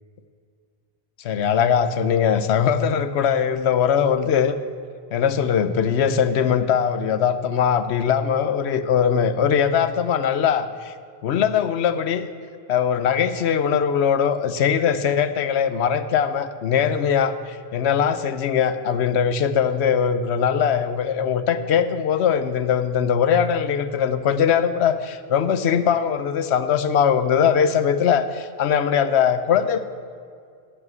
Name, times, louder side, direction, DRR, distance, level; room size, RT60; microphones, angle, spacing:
voice 1, 1.2-4.5 5.1-10.9 11.2-12.3 12.7-29.8, left 7 dB, 80° left, 12 dB, 1.0 m, -21 dB
11.0 x 10.0 x 7.9 m, 2.2 s
omnidirectional pair, 1.1 m